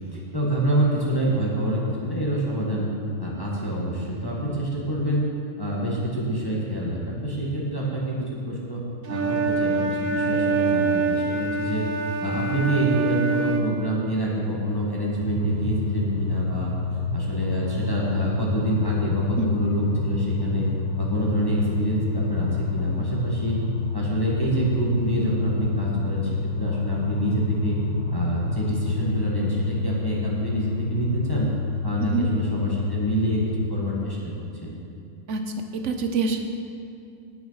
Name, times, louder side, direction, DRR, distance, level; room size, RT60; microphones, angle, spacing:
voice 1, 0.1-2.9 3.2-5.2 5.6-11.8 12.2-16.7 17.1-20.6 21.0-23.6 23.9-26.3 26.6-27.8 28.1-31.5 31.8-33.4 33.7-34.7, right 1 dB, 15° left, -5 dB, 1.8 m, -26 dB
Wind instrument woodwind instrument, 9.0-13.7, right 4 dB, 80° right, 1.5 m, -25 dB
sound 1, 15.2-33.4, left 4 dB, 20° right, 3.0 m, -28 dB
voice 2, 35.7-36.4, right 4 dB, 60° right, 5 dB, 1.3 m, -25 dB
18.0 x 6.3 x 5.7 m, 2.6 s
omnidirectional pair, 1.4 m